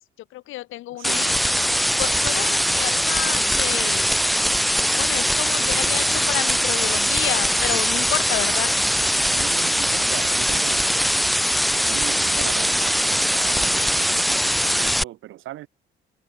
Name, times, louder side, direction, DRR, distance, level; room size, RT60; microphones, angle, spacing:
voice 1, 0.3-1.3 2.0-4.1 5.0-8.7, left 16 dB, 85° left, 0.8 m, -30 dB
voice 2, 0.9-1.3 9.2-11.0 11.8-15.7, right 14 dB, 85° right, 4.5 m, -38 dB
sound 1, 1.0-15.0, equal, ahead, 0.4 m, -21 dB
cardioid pair, 90°, 20 cm